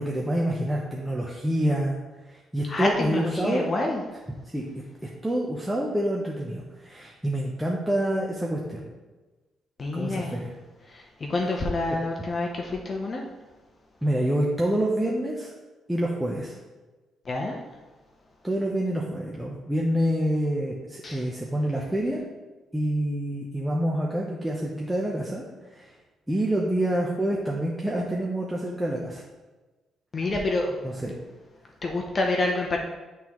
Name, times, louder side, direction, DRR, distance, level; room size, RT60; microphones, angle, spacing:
voice 1, 0.0-2.0 2.3-3.7 4.5-4.7 5.2-8.8 9.9-10.5 11.9-12.0 14.0-15.5 15.9-16.6 18.4-22.2 22.7-25.4 25.7-26.0 26.3-29.2 30.8-31.1, right 1 dB, 10° right, -3 dB, 0.8 m, -27 dB
voice 2, 2.7-4.0 9.8-10.4 10.9-13.2 17.2-17.6 21.0-21.2 30.1-30.7 31.8-32.8, left 2 dB, 35° left, 0 dB, 0.8 m, -27 dB
10.5 x 3.7 x 3.1 m, 1.2 s
cardioid pair, 90°, 0 cm